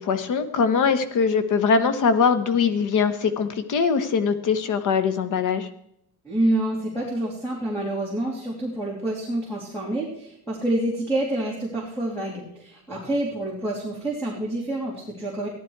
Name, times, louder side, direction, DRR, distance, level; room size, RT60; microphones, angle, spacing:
voice 1, 0.0-5.7, left 5 dB, 50° left, 11 dB, 1.2 m, -22 dB
voice 2, 6.2-15.5, right 1 dB, 5° left, -4 dB, 2.9 m, -27 dB
15.0 x 11.0 x 4.7 m, 0.74 s
cardioid pair, 165°, 38 cm